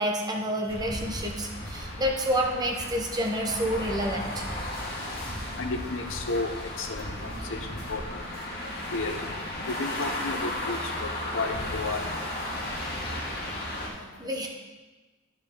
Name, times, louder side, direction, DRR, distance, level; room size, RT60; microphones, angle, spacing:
voice 1, 0.0-4.4 7.2-7.5 13.9-14.5, equal, 20° right, 1 dB, 0.8 m, -29 dB
sound 1, 0.7-13.9, left 1 dB, 50° left, 1.8 m, -35 dB
voice 2, 5.6-8.2 8.6-9.3 9.7-12.1 13.1-13.2, left 3 dB, 70° left, 6 dB, 0.7 m, -33 dB
11.0 x 4.8 x 3.7 m, 1.2 s
head